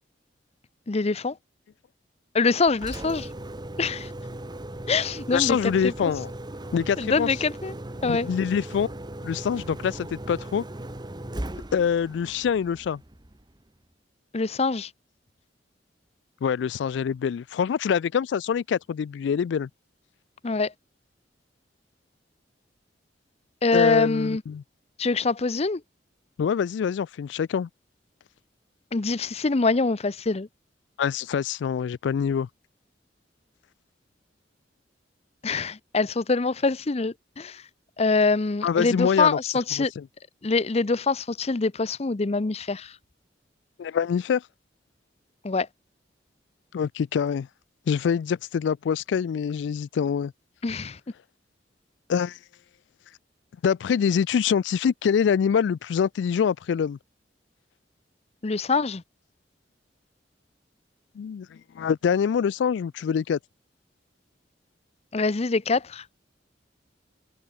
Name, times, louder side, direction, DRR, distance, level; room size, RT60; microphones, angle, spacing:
voice 1, 0.9-1.4 2.3-3.3 3.8-4.1 4.9-6.1 7.0-7.7 8.0-8.3 14.3-14.9 20.4-20.7 23.6-24.4 25.0-25.8 28.9-30.5 35.4-37.6 38.0-39.9 40.4-43.0 45.4-45.7 50.6-51.0 58.4-59.0 65.1-66.0, left 3 dB, 35° left, 0.6 m, -24 dB
Engine, 2.7-13.6, right 1 dB, 25° right, 1.3 m, -38 dB
voice 2, 5.3-6.3 6.7-7.3 8.0-8.9 9.2-10.6 11.7-13.0 16.4-19.7 23.7-24.6 26.4-27.7 31.0-32.5 38.6-39.4 39.8-40.0 43.8-44.4 46.7-47.5 47.9-50.3 52.1-52.4 53.6-57.0 61.2-63.4, left 7 dB, 75° left, 0.3 m, -25 dB
head